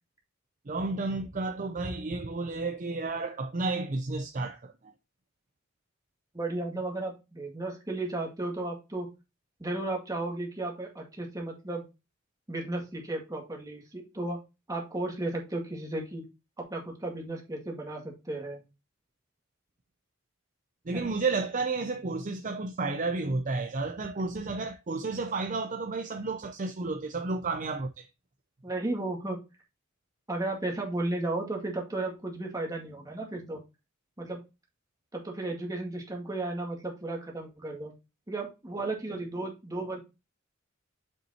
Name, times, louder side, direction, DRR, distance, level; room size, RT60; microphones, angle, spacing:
voice 1, 0.7-4.7 20.9-28.1, right 3 dB, 40° right, 0.6 m, -32 dB
voice 2, 6.3-9.1 9.6-11.8 12.5-14.4 14.7-16.2 16.6-18.6 20.9-21.1 28.6-29.4 30.3-33.6 34.2-34.4 35.1-37.9 38.3-40.0, right 2 dB, 15° right, 2.0 m, -34 dB
7.3 x 5.4 x 2.8 m
head